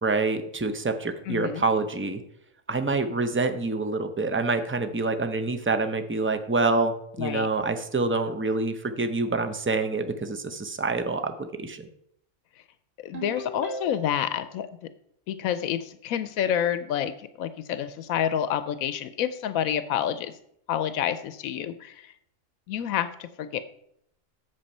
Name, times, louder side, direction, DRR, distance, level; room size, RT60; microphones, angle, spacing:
voice 1, 0.0-2.2 2.7-11.9, right 3 dB, 15° right, 8 dB, 0.4 m, -26 dB
voice 2, 1.3-1.6 7.2-7.5 13.0-14.7 15.3-20.3 20.7-22.1 22.7-23.6, left 9 dB, 85° left, 12 dB, 1.0 m, -28 dB
Ringtone, 13.1-14.3, right 2 dB, 50° right, 2.4 m, -37 dB
8.8 x 7.2 x 5.4 m, 0.72 s
omnidirectional pair, 1.4 m